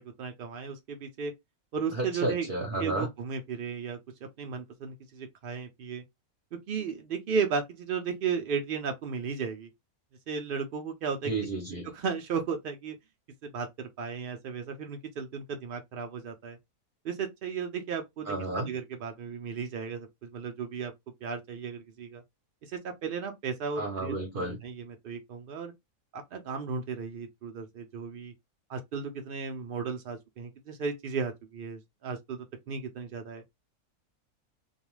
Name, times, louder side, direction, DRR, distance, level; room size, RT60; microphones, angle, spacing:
voice 1, 0.0-1.3 1.7-2.5 2.8-6.0 6.7-9.7 10.3-11.3 11.9-13.0 13.4-16.6 17.0-20.9 21.2-22.2 22.6-25.7 26.1-28.3 28.7-33.4, right 5 dB, 85° right, 0.4 m, -35 dB
voice 2, 1.9-3.1 11.2-11.9 18.3-18.7 23.8-24.6, right 2 dB, 50° right, 0.7 m, -32 dB
2.3 x 2.3 x 3.0 m
omnidirectional pair, 1.5 m